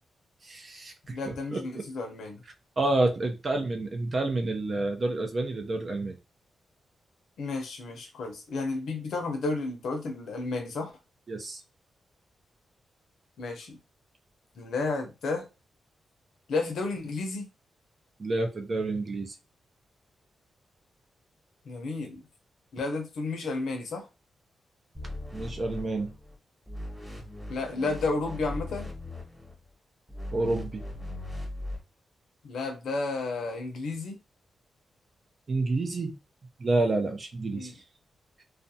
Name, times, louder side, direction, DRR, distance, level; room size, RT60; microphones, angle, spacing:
voice 1, 0.4-1.6 2.8-6.2 11.3-11.6 18.2-19.3 25.3-26.1 30.3-30.8 35.5-36.1 36.6-37.7, right 2 dB, 45° right, 0.6 m, -29 dB
voice 2, 1.1-2.4 7.4-10.9 13.4-13.8 14.6-15.5 16.5-17.5 21.7-22.2 22.7-24.1 27.5-28.9 32.4-34.2 37.5-37.7, left 3 dB, 80° left, 0.7 m, -32 dB
sound 1, 24.9-26.3 26.7-29.5 30.1-31.8, left 1 dB, 5° right, 1.1 m, -39 dB
2.5 x 2.2 x 2.7 m
cardioid pair, 90°, 0 cm